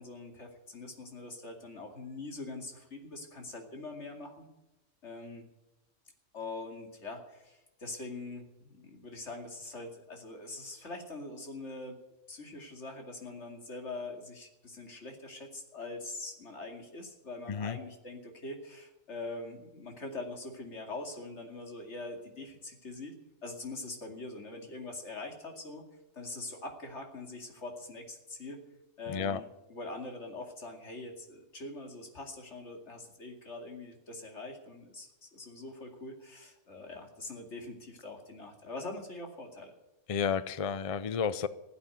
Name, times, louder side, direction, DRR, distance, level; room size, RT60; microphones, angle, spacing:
voice 1, 0.0-4.5 5.0-5.5 6.3-12.0 12.3-23.1 23.4-25.8 26.1-28.6 29.0-39.7, left 2 dB, 65° left, 3 dB, 2.7 m, -43 dB
voice 2, 29.1-29.4 40.1-41.5, left 6 dB, 45° left, 16 dB, 0.4 m, -31 dB
15.5 x 8.8 x 9.2 m, 0.96 s
omnidirectional pair, 1.3 m